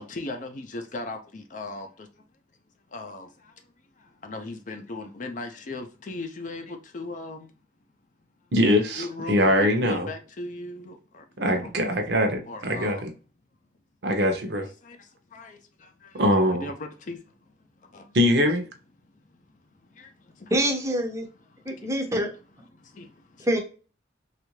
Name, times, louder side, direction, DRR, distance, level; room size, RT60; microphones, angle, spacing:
voice 1, 0.0-2.1 2.9-3.6 4.0-7.5 9.0-11.3 11.5-11.7 12.5-13.0 14.8-16.2 16.5-18.2 19.0-20.5 21.5-22.1 22.7-23.5, left 2 dB, 45° left, 0.5 m, -39 dB
voice 2, 8.5-10.1 11.4-13.1 14.0-14.7 16.1-16.7 18.1-18.6, equal, 60° right, 0.7 m, -22 dB
voice 3, 20.5-21.3 21.7-22.3 23.4-23.6, right 1 dB, 15° right, 0.6 m, -25 dB
3.2 x 2.4 x 3.1 m
head